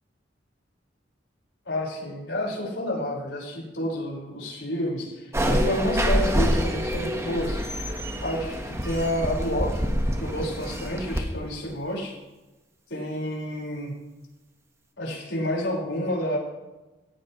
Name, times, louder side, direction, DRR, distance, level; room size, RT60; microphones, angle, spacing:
voice 1, 1.7-7.7 8.2-9.9 10.2-12.2 12.9-13.9 15.0-16.4, equal, 80° left, -2 dB, 5.6 m, -29 dB
sound 1, 5.3-11.2, equal, 15° right, 1.5 m, -26 dB
17.0 x 16.0 x 3.3 m, 1.1 s
head